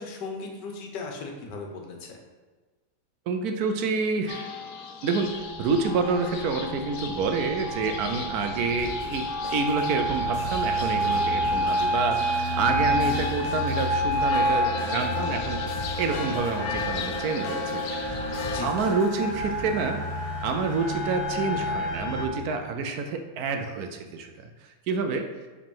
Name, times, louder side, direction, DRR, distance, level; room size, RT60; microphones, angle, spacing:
voice 1, 0.0-2.2 18.4-18.8, left 4 dB, 85° left, 2 dB, 1.6 m, -37 dB
voice 2, 3.3-4.5 5.0-15.6 16.0-18.2 18.6-20.0 20.4-24.5 24.9-25.3, right 4 dB, 70° right, 6 dB, 1.1 m, -28 dB
sound 1, 4.3-18.6, left 4 dB, 70° left, 1.1 m, -36 dB
sound 2, 5.1-22.3, equal, 30° right, 0.7 m, -29 dB
sound 3, 8.8-19.5, equal, 25° left, 1.1 m, -41 dB
5.2 x 4.2 x 5.4 m, 1.3 s
omnidirectional pair, 1.8 m